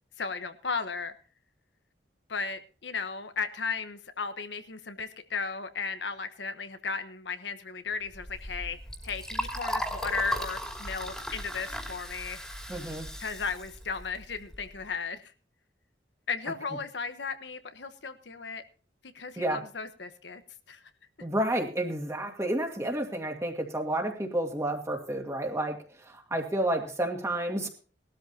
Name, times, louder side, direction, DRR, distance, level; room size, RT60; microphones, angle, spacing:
voice 1, 0.2-1.1 2.3-8.8 9.0-12.4 13.2-15.3 16.3-18.6 19.1-20.4 20.7-20.8, left 5 dB, 75° left, 9 dB, 1.1 m, -35 dB
Liquid, 8.1-14.8, equal, 5° left, 2.6 m, -37 dB
voice 2, 12.7-13.1 19.4-19.6 21.2-27.7, right 1 dB, 15° right, 3 dB, 2.3 m, -30 dB
19.0 x 13.0 x 2.8 m, 0.38 s
head